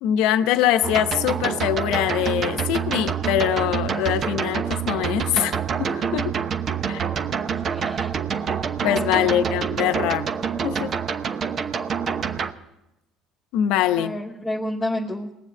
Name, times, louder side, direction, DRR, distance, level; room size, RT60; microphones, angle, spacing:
voice 1, 0.0-6.3 6.9-7.0 8.8-10.3 10.6-10.9 13.5-14.1, left 11 dB, 75° left, 11 dB, 0.8 m, -23 dB
sound 1, 0.8-12.5, right 7 dB, 50° right, 0.9 m, -26 dB
voice 2, 7.5-8.1 8.4-8.5 8.8-9.5 13.9-15.3, left 1 dB, 15° left, -1 dB, 1.3 m, -30 dB
19.5 x 7.4 x 9.1 m, 0.93 s
supercardioid pair, 75°, 0 cm